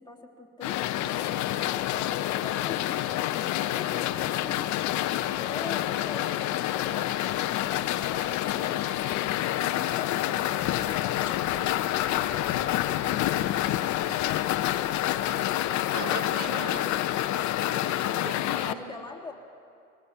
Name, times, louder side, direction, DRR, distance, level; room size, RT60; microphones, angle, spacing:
voice 1, 0.0-8.9 18.6-19.3, left 4 dB, 10° left, 0 dB, 3.2 m, -44 dB
sound 1, 0.6-18.7, left 14 dB, 45° left, 0.9 m, -28 dB
sound 2, 10.6-15.5, left 6 dB, 30° left, 2.6 m, -50 dB
voice 2, 15.9-16.9 17.3-18.9, right 3 dB, 45° right, 2 dB, 3.0 m, -39 dB
21.5 x 19.0 x 7.2 m, 2.4 s
hypercardioid pair, 80°, 39 cm